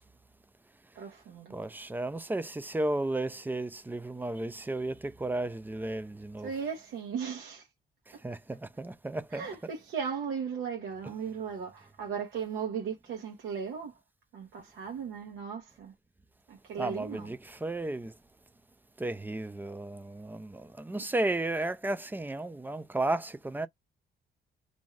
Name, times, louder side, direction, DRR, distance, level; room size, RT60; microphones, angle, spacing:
voice 1, 1.0-1.5 6.4-7.7 8.1-8.2 9.3-13.9 14.3-15.9 16.5-17.3 20.9-21.0, right 7 dB, 85° right, 0.9 m, -37 dB
voice 2, 1.5-6.5 8.2-9.5 16.8-18.1 19.0-23.7, right 2 dB, 10° right, 0.3 m, -33 dB
2.6 x 2.3 x 3.1 m
cardioid pair, 90°, 20 cm